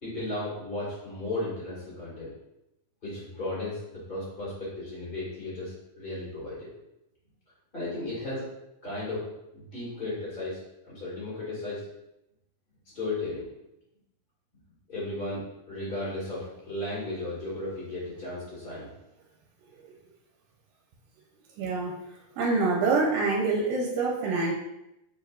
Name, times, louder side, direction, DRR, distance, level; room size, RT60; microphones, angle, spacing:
voice 1, 0.0-2.3 3.0-6.7 7.7-8.5 8.8-10.6 10.8-11.9 12.8-13.5 14.9-18.9, left 2 dB, 35° left, -9 dB, 0.9 m, -35 dB
voice 2, 21.6-22.0 22.4-24.5, right 3 dB, 80° right, -2 dB, 2.2 m, -26 dB
6.6 x 3.4 x 2.4 m, 0.88 s
omnidirectional pair, 4.0 m